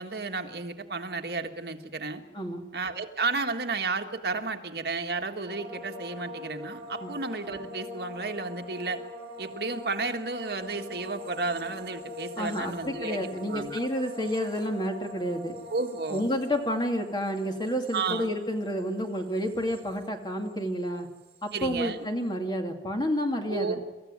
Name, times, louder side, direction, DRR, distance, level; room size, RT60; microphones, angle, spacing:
voice 1, 0.0-2.2 2.7-9.0 9.4-13.9 15.7-16.3 17.9-18.3 21.5-22.0 23.5-23.8, right 3 dB, 65° right, 4 dB, 1.7 m, -32 dB
voice 2, 2.3-2.6 7.0-7.1 12.4-15.6 16.1-21.1 21.4-23.8, equal, 25° left, 3 dB, 2.3 m, -30 dB
sound 1, 5.5-20.7 20.9-21.6, left 2 dB, 35° right, 4.9 m, -44 dB
26.5 x 14.5 x 9.7 m, 1.3 s
head